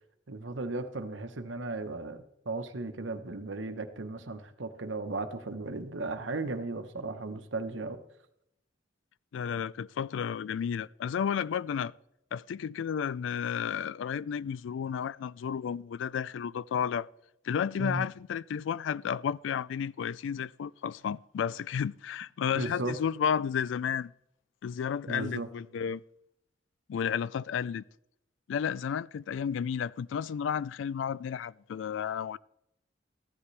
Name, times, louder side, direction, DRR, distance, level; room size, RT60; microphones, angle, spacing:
voice 1, 0.3-8.0 17.8-18.1 22.6-23.0 25.1-25.5, right 2 dB, 75° right, 1.0 m, -36 dB
voice 2, 9.3-11.9 12.3-17.1 17.4-24.1 24.6-26.0 26.9-27.8 28.5-32.4, left 7 dB, 75° left, 0.3 m, -32 dB
14.5 x 11.0 x 3.3 m
head